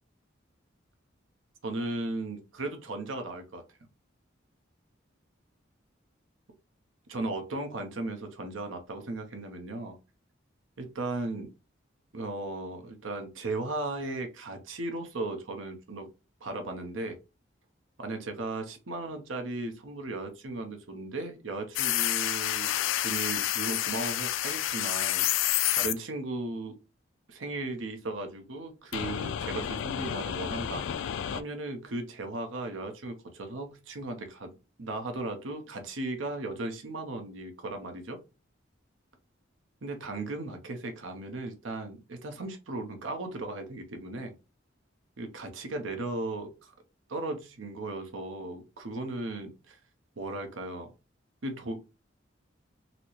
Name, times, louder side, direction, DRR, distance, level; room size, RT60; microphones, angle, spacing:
voice 1, 1.6-3.6 7.1-10.0 10.8-11.5 12.1-16.1 16.4-17.2 18.0-22.8 23.0-25.3 25.7-26.8 27.3-30.9 31.3-38.2 39.8-44.3 45.2-46.7 47.1-49.8 50.2-50.9 51.4-51.8, right 2 dB, 75° right, 0.8 m, -36 dB
sound 1, 21.8-25.9 28.9-31.4, left 12 dB, 75° left, 0.3 m, -29 dB
4.1 x 2.0 x 2.9 m
head